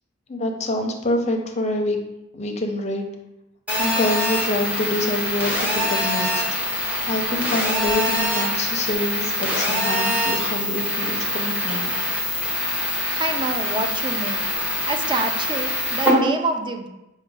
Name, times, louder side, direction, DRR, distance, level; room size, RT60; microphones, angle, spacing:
voice 1, 0.3-2.0 2.3-3.1 3.8-6.6 7.1-11.9, left 1 dB, 35° left, 3 dB, 0.5 m, -26 dB
Telephone, 3.7-16.1, left 1 dB, 10° right, 0.8 m, -24 dB
voice 2, 13.1-14.4 14.9-16.9, right 2 dB, 25° right, 5 dB, 0.4 m, -27 dB
5.0 x 2.2 x 4.7 m, 0.92 s
head